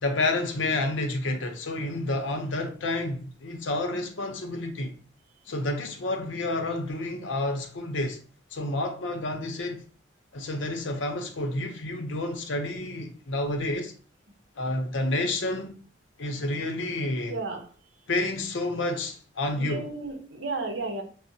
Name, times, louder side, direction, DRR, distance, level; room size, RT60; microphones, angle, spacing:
voice 1, 0.0-4.9 5.5-8.2 8.5-9.8 10.3-13.9 14.6-15.8 16.2-17.4 18.1-19.9, left 2 dB, 85° left, 0.7 m, -29 dB
voice 2, 17.3-17.7 19.6-21.0, right 3 dB, 90° right, 0.8 m, -33 dB
6.0 x 2.1 x 2.7 m
head